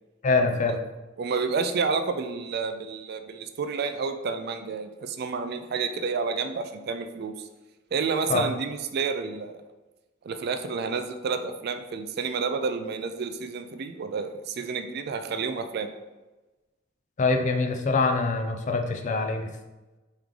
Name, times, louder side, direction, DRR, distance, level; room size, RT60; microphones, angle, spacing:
voice 1, 0.2-0.8 8.3-8.4 17.2-19.5, left 3 dB, 40° left, 4 dB, 0.4 m, -24 dB
voice 2, 1.2-7.3 7.9-9.6 10.2-15.9, right 5 dB, 55° right, 8 dB, 0.4 m, -30 dB
3.6 x 3.2 x 3.6 m, 1.1 s
head